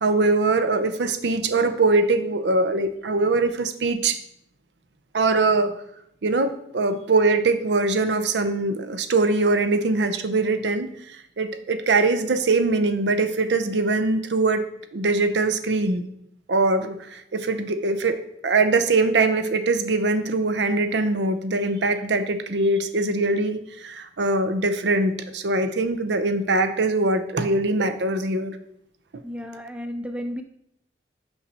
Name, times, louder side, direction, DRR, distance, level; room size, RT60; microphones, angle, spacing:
voice 1, 0.0-4.2 5.1-5.7 6.2-14.6 14.9-16.0 16.5-18.2 18.4-28.6, right 3 dB, 80° right, 10 dB, 0.6 m, -22 dB
voice 2, 29.2-30.4, equal, 5° right, 7 dB, 0.3 m, -33 dB
5.7 x 5.3 x 4.1 m, 0.73 s
head